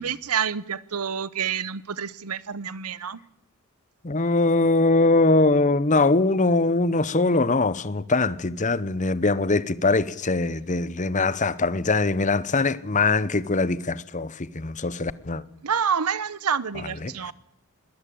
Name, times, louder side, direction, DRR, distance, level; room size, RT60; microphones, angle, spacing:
voice 1, 0.0-3.2 15.6-17.3, right 7 dB, 85° right, 0.9 m, -28 dB
voice 2, 4.0-15.4 17.0-17.3, left 3 dB, 35° left, 0.9 m, -22 dB
21.5 x 18.5 x 8.6 m
head